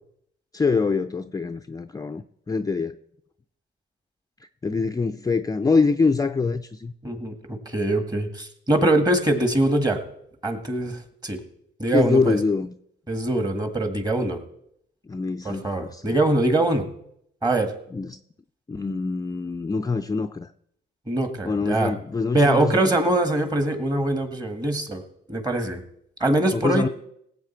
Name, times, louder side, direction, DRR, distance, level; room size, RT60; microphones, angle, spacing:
voice 1, 0.5-2.9 4.6-6.9 11.9-12.7 15.0-16.1 17.9-18.2 18.7-20.5 21.4-23.0 26.5-26.9, left 4 dB, 20° left, 0.4 m, -24 dB
voice 2, 7.0-10.0 10.4-11.4 11.8-12.4 13.1-14.4 15.4-16.9 17.4-17.7 21.1-21.9 22.3-25.0 25.3-25.8 26.2-26.9, right 2 dB, 20° right, 1.8 m, -23 dB
17.5 x 8.1 x 4.5 m
cardioid pair, 90°, 20 cm